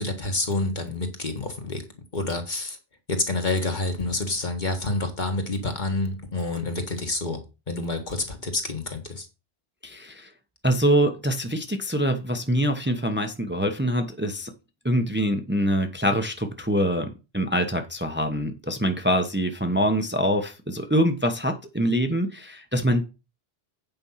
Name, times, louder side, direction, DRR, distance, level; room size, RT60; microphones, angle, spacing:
voice 1, 0.0-1.8 2.1-2.8 3.1-9.3, left 2 dB, 45° left, 1.8 m, -28 dB
voice 2, 9.8-10.3 10.6-14.5 14.8-17.1 17.3-23.0, equal, 10° right, 1.0 m, -24 dB
8.9 x 5.3 x 5.6 m
omnidirectional pair, 1.1 m